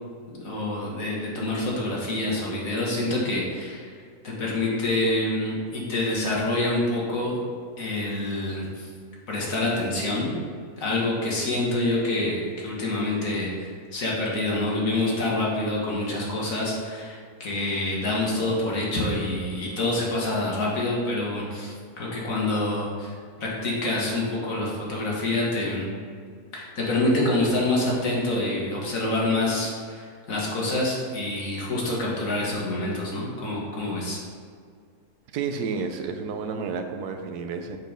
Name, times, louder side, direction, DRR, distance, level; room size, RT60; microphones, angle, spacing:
voice 1, 0.3-3.9 4.2-7.4 7.8-8.9 9.3-10.3 10.8-25.9 26.5-34.2, left 2 dB, 60° left, -4 dB, 1.8 m, -27 dB
voice 2, 35.3-37.8, right 5 dB, 90° right, 6 dB, 1.2 m, -31 dB
6.5 x 4.1 x 5.1 m, 2.1 s
omnidirectional pair, 1.6 m